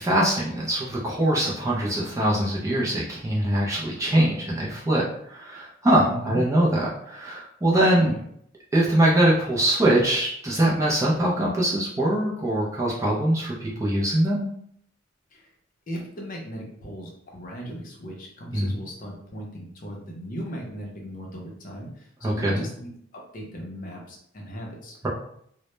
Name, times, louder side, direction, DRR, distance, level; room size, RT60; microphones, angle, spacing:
voice 1, 0.0-5.0 5.3-8.1 8.7-14.5 18.5-18.8 22.2-22.7, right 1 dB, 15° right, -5 dB, 0.3 m, -23 dB
voice 2, 6.0-6.4 8.0-8.2 15.3-15.5 15.9-24.9, equal, 40° left, -1 dB, 0.5 m, -37 dB
2.0 x 2.0 x 3.0 m, 0.68 s
head